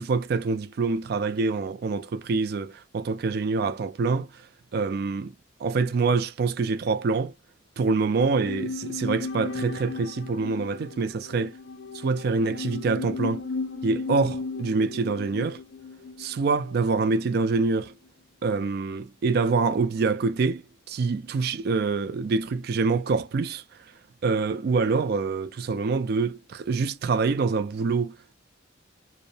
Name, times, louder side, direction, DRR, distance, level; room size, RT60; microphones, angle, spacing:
voice 1, 0.0-4.3 4.7-5.3 5.6-7.3 7.8-11.5 11.9-13.4 13.8-15.6 16.2-17.9 18.4-23.6 24.2-28.3, right 4 dB, 50° right, 0.3 m, -25 dB
sound 1, 8.2-17.5 17.8-17.9, left 4 dB, 60° left, 0.4 m, -36 dB
2.6 x 2.0 x 2.7 m
head